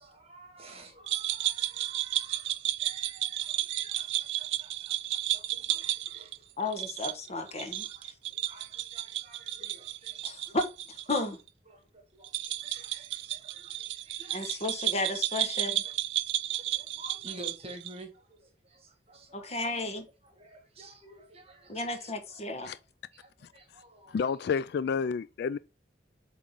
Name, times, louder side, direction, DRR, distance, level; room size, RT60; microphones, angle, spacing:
voice 1, 0.0-6.5 7.5-10.6 11.7-14.7 15.3-15.4 15.8-15.9 16.5-19.6 20.2-22.8 23.1-24.5, right 2 dB, 35° right, 1.6 m, -52 dB
sound 1, 1.1-11.2 11.5-11.6 12.2-18.0, right 14 dB, 85° right, 0.5 m, -33 dB
voice 2, 6.6-8.1 10.2-11.4 14.3-15.8 19.3-20.1 21.7-22.7, left 2 dB, 40° left, 1.2 m, -33 dB
voice 3, 23.4-23.8 24.1-25.6, left 6 dB, 65° left, 0.3 m, -31 dB
7.6 x 3.7 x 3.7 m
head